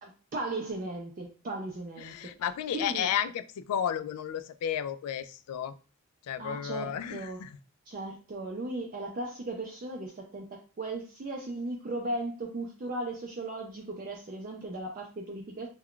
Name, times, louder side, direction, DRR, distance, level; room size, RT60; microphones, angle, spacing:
voice 1, 0.0-2.3 2.7-3.1 6.4-7.4 7.9-15.7, right 2 dB, 40° right, 0 dB, 0.4 m, -37 dB
voice 2, 2.0-5.7 6.2-7.6, left 9 dB, 90° left, 14 dB, 0.3 m, -33 dB
2.3 x 2.2 x 3.6 m, 0.35 s
head